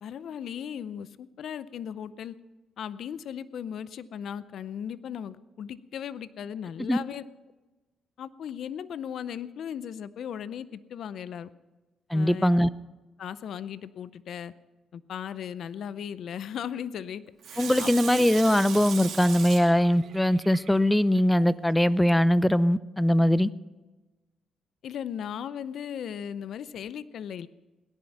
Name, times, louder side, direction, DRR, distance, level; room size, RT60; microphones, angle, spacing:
voice 1, 0.0-2.4 2.8-7.2 8.2-11.5 12.1-12.5 13.2-14.5 14.9-17.2 17.5-18.3 24.8-27.5, left 8 dB, 65° left, 16 dB, 0.6 m, -37 dB
voice 2, 12.1-12.7 17.6-23.5, equal, 5° left, 18 dB, 0.5 m, -21 dB
Water tap faucet / Sink (filling or washing), 17.4-21.2 21.7-21.8, right 7 dB, 70° right, 2.4 m, -38 dB
17.5 x 10.5 x 5.8 m, 1.2 s
cardioid pair, 90°, 0 cm